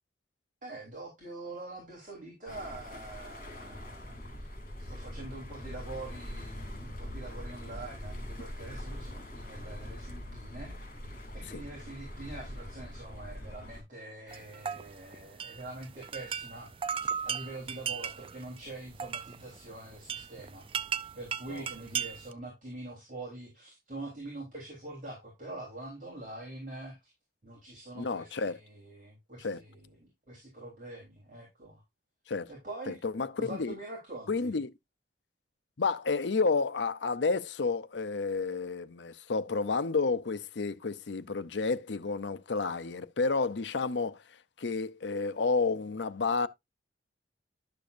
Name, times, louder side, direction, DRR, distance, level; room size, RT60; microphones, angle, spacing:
voice 1, 0.6-4.5 4.8-10.8 11.3-16.7 17.0-20.7 21.2-27.1 27.4-31.8 32.5-33.0 33.4-34.5, right 2 dB, 45° right, 3.6 m, -44 dB
sound 1, 2.5-13.8, left 1 dB, 50° left, 3.7 m, -43 dB
sound 2, 14.3-22.3, right 7 dB, 30° right, 0.4 m, -37 dB
voice 2, 28.0-28.6 29.4-29.6 32.3-32.5 32.9-33.7 34.3-34.7 35.8-44.2 44.6-46.5, left 4 dB, 80° left, 0.7 m, -30 dB
11.5 x 6.8 x 2.5 m
head